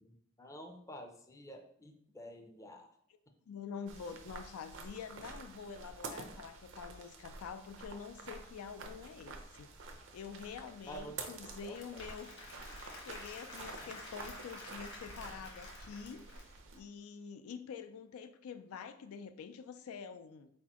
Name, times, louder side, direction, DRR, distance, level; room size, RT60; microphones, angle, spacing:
voice 1, 0.0-2.9 10.9-11.3 11.6-12.0 13.6-13.9, equal, 15° left, 4 dB, 0.4 m, -50 dB
voice 2, 3.5-12.3 12.7-20.5, left 6 dB, 90° left, 10 dB, 0.4 m, -47 dB
sound 1, 3.9-16.8, right 3 dB, 60° right, 0.6 m, -49 dB
Applause / Crowd, 11.4-16.7, left 2 dB, 55° left, 1.1 m, -51 dB
4.2 x 4.2 x 2.9 m, 0.69 s
head